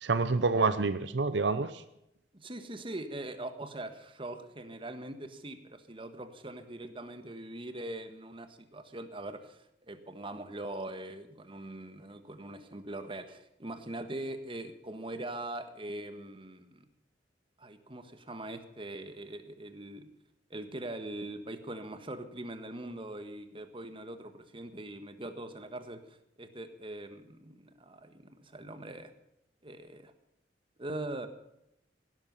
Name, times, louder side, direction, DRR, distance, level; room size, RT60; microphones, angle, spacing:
voice 1, 0.0-1.7, right 3 dB, 75° right, 13 dB, 0.8 m, -27 dB
voice 2, 2.3-9.6 9.9-16.8 17.6-20.1 20.5-29.1 29.6-30.1 30.8-31.3, right 1 dB, 30° right, 9 dB, 1.5 m, -42 dB
17.0 x 12.5 x 5.7 m, 0.82 s
head